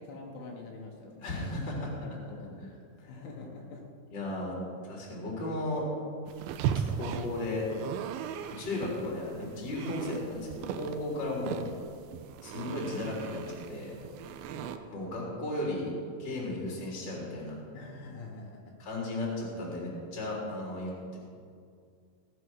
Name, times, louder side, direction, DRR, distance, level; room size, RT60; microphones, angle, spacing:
voice 1, 0.0-1.6 2.0-3.9 14.5-14.7 17.7-18.8, left 3 dB, 75° left, -1 dB, 3.6 m, -45 dB
voice 2, 1.2-1.9 4.1-4.6 4.9-5.9 6.7-7.7 8.6-11.6 12.4-13.9 14.9-15.9 16.2-17.6 18.8-21.2, left 2 dB, 25° left, -3 dB, 3.5 m, -35 dB
sound 1, 6.3-14.8, right 8 dB, 85° right, 2.8 m, -38 dB
18.5 x 8.4 x 6.3 m, 2.2 s
omnidirectional pair, 5.7 m